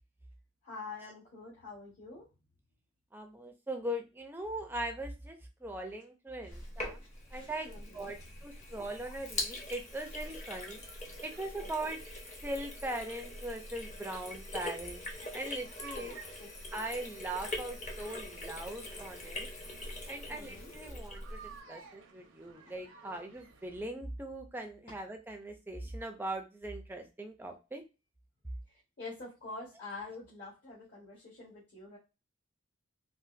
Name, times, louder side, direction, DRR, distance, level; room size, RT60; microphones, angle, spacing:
voice 1, 0.6-2.3 6.5-6.6 7.3-8.1 11.6-11.7 15.9-16.5 20.3-20.7 21.8-21.9 28.7-32.0, left 3 dB, 50° left, -7 dB, 1.3 m, -47 dB
voice 2, 3.1-7.0 7.3-10.8 11.2-12.0 12.4-15.0 15.3-16.2 16.7-19.5 20.1-21.4 21.7-27.8, right 1 dB, 10° right, 4 dB, 0.4 m, -40 dB
Sink (filling or washing), 6.5-21.6, left 2 dB, 35° left, 0.7 m, -43 dB
sound 1, 9.6-23.8, right 5 dB, 75° right, 0.6 m, -56 dB
3.8 x 2.5 x 2.4 m, 0.28 s
head